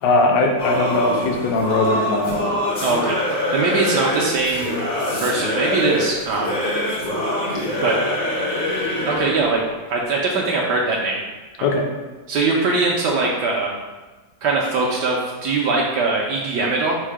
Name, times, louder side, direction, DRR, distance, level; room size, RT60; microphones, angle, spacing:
voice 1, 0.0-2.4 11.6-11.9, left 2 dB, 70° left, 2 dB, 1.2 m, -19 dB
Singing / Musical instrument, 0.6-9.5, left 1 dB, 45° left, 0.6 m, -24 dB
voice 2, 2.8-4.8 5.2-6.6 7.8-8.0 9.0-9.6 9.9-11.2 11.6-11.7 12.3-13.7 14.4-17.0, right 3 dB, 75° right, -2 dB, 1.1 m, -21 dB
4.5 x 2.1 x 4.6 m, 1.2 s
omnidirectional pair, 2.0 m